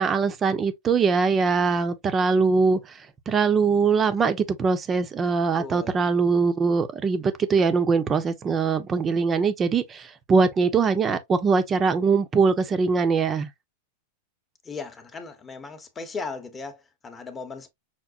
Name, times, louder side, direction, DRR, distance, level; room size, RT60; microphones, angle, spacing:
voice 1, 0.0-2.8 3.3-13.5, right 5 dB, 25° right, 0.6 m, -22 dB
voice 2, 5.6-6.0 14.6-17.7, left 4 dB, 20° left, 0.9 m, -37 dB
5.8 x 2.1 x 2.5 m
hypercardioid pair, 120°, 0 cm